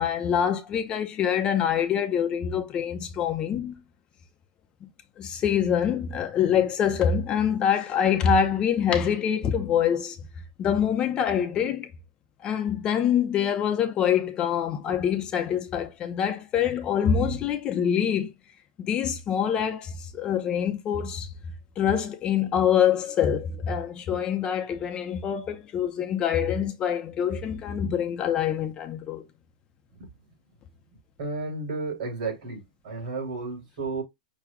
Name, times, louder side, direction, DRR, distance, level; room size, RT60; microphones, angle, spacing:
voice 1, 0.0-3.7 4.8-4.9 5.2-10.2 10.6-11.9 12.4-18.3 18.8-21.3 21.8-29.2, left 8 dB, 20° left, 0.6 m, -25 dB
voice 2, 31.2-34.0, right 3 dB, 50° right, 3.4 m, -33 dB
5.9 x 2.2 x 3.5 m
supercardioid pair, 155°, 4 cm